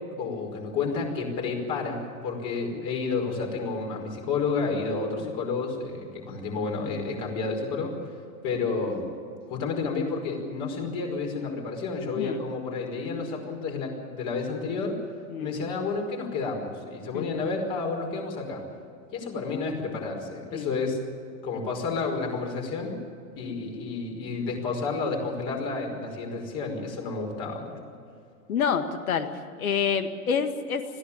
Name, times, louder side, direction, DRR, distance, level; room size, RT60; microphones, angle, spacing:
voice 1, 0.2-8.1 8.4-9.0 9.5-15.0 15.4-18.6 19.1-21.0 21.4-23.0 23.4-27.7, left 4 dB, 45° left, 1 dB, 5.3 m, -30 dB
voice 2, 12.2-12.5 15.3-15.5 17.1-17.3 20.5-20.8 28.5-29.3 29.6-30.8, left 7 dB, 70° left, 9 dB, 1.9 m, -28 dB
21.0 x 15.0 x 8.7 m, 2.4 s
figure-of-eight pair, 95°, 44 cm